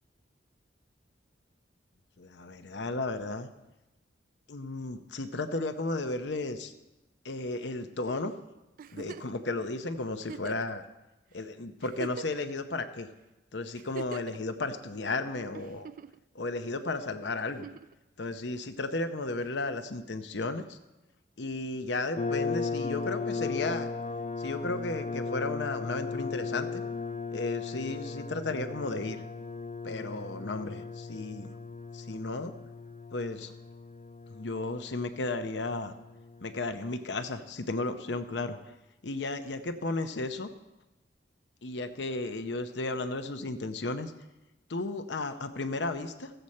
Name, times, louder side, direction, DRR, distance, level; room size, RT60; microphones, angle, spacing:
voice 1, 2.2-3.5 4.5-6.7 7.2-8.4 8.9-10.8 11.3-13.1 13.5-15.9 16.3-17.7 18.2-20.8 21.4-23.9 24.4-26.8 27.3-29.2 29.8-31.5 31.9-32.5 33.1-33.5 34.3-35.9 36.4-38.6 39.0-40.5 41.6-44.1 44.7-46.3, left 2 dB, 70° left, 9 dB, 0.8 m, -34 dB
Giggle, 8.8-9.4 10.2-10.7 11.4-11.5 11.8-12.6 13.7-14.4 15.5-16.2 17.5-17.9 19.4-19.5, right 5 dB, 50° right, 0.3 m, -43 dB
sound 1, 22.2-36.6, left 4 dB, 35° left, 0.3 m, -37 dB
15.0 x 7.9 x 4.3 m, 1.0 s
head